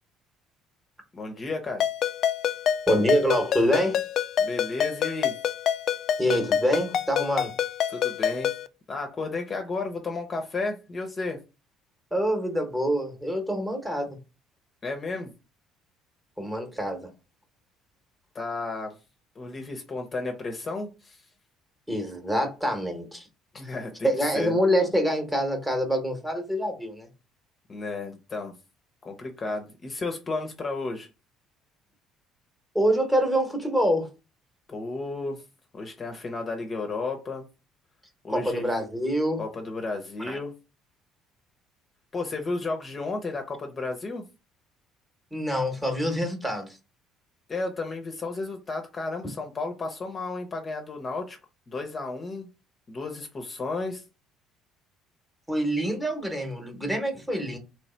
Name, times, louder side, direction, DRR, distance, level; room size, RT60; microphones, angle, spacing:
voice 1, 1.1-1.8 4.4-5.4 7.9-8.5 8.9-11.4 14.8-15.3 18.3-18.9 19.4-21.2 23.5-24.1 24.3-24.6 27.7-28.5 29.0-31.1 34.7-35.4 35.7-37.5 38.2-38.7 39.4-40.6 42.1-44.2 47.5-51.4 51.7-52.5 52.9-54.0, left 3 dB, 30° left, 0.7 m, -33 dB
Ringtone, 1.8-8.7, left 9 dB, 50° left, 0.3 m, -27 dB
voice 2, 2.9-4.0 6.2-7.5 12.1-14.2 16.4-17.1 21.9-23.3 23.6-23.7 24.0-27.1 32.7-34.1 38.3-39.4 40.2-40.4 45.3-46.8 55.5-57.6, equal, 10° right, 1.1 m, -26 dB
3.1 x 3.1 x 4.3 m
cardioid pair, 130°, 0 cm